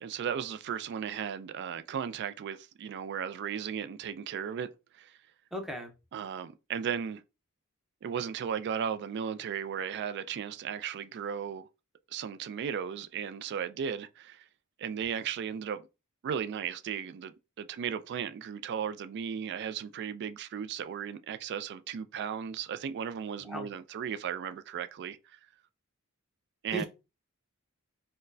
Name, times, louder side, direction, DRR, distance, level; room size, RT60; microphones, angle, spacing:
voice 1, 0.0-4.7 4.9-5.2 6.1-7.2 8.0-11.7 12.1-14.5 14.8-15.8 16.2-17.3 17.6-25.4 26.6-26.8, right 8 dB, 55° right, 0.3 m, -36 dB
voice 2, 5.5-5.9 23.5-23.7 26.7-26.9, right 1 dB, ahead, 0.6 m, -35 dB
4.2 x 2.1 x 2.6 m
head